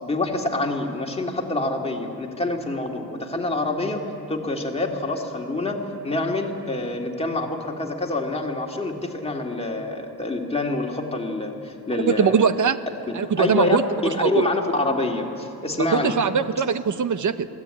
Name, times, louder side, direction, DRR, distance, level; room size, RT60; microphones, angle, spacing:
voice 1, 0.0-12.5 13.1-13.8 14.1-16.2, left 2 dB, 15° left, 1 dB, 2.2 m, -26 dB
voice 2, 11.9-12.8 13.1-14.5 15.8-17.5, right 6 dB, 50° right, 12 dB, 0.8 m, -22 dB
22.5 x 16.0 x 9.0 m, 2.7 s
wide cardioid pair, 145°, 41 cm